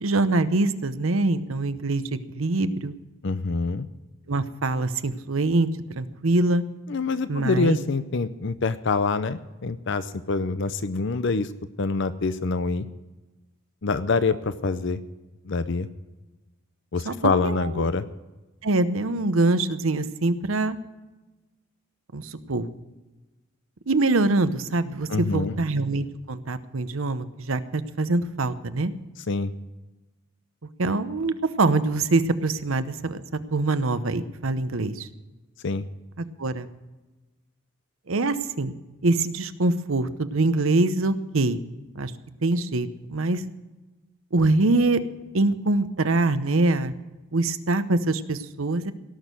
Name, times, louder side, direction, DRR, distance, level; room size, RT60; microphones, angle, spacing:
voice 1, 0.0-3.0 4.3-5.7 6.0-6.6 7.3-7.8 17.1-17.2 17.4-17.9 18.6-20.8 22.1-22.7 23.9-28.9 30.8-33.2 33.5-35.1 36.2-36.7 38.1-38.8 39.0-41.6 41.9-42.1 42.4-43.4 44.3-45.0 45.3-46.9 47.3-48.9, right 2 dB, 75° right, 12 dB, 0.9 m, -24 dB
voice 2, 3.2-3.9 6.9-11.5 11.8-12.9 13.8-15.0 15.4-15.9 16.9-18.0 25.1-25.6 29.3-29.5 35.6-35.9, left 4 dB, 60° left, 13 dB, 0.6 m, -25 dB
17.5 x 6.4 x 9.2 m, 1.1 s
head